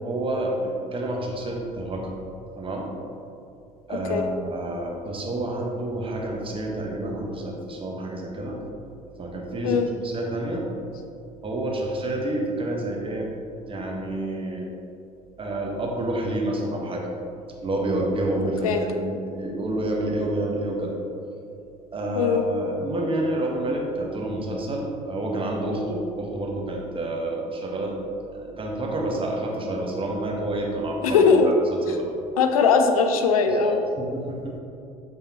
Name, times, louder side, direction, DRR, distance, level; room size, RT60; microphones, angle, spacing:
voice 1, 0.0-2.1 2.6-2.9 3.9-8.6 9.2-10.7 11.4-13.3 13.6-14.7 15.4-17.0 17.6-20.9 21.9-31.3 31.9-32.1 33.5-34.6, right 1 dB, 30° right, -1 dB, 1.2 m, -29 dB
voice 2, 3.9-4.2 9.6-9.9 18.6-18.8 22.1-22.4 31.0-31.5 31.9-32.0 32.4-33.8, left 5 dB, 80° left, 6 dB, 0.5 m, -20 dB
6.6 x 5.4 x 2.9 m, 2.6 s
figure-of-eight pair, 55°, 18 cm